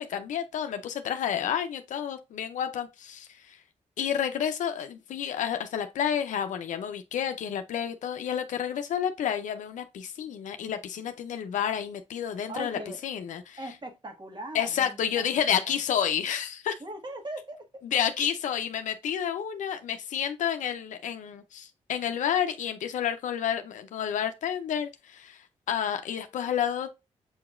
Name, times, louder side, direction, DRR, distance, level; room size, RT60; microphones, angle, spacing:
voice 1, 0.0-3.6 4.0-13.6 14.5-16.8 17.8-26.9, left 9 dB, 80° left, 0.5 m, -30 dB
voice 2, 12.5-13.0 13.6-15.0 15.3-15.7 16.8-17.6, right 1 dB, 40° right, 1.5 m, -39 dB
7.0 x 2.9 x 2.4 m
supercardioid pair, 50°, 13 cm